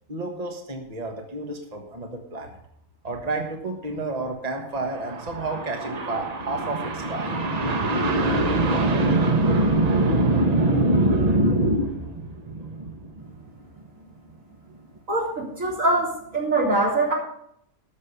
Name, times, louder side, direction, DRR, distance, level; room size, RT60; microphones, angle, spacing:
voice 1, 0.1-2.6 3.0-15.0, right 2 dB, 30° right, 3 dB, 1.5 m, -25 dB
voice 2, 15.1-17.1, right 2 dB, 85° right, -3 dB, 4.1 m, -23 dB
13.0 x 6.5 x 6.6 m, 0.72 s
omnidirectional pair, 1.4 m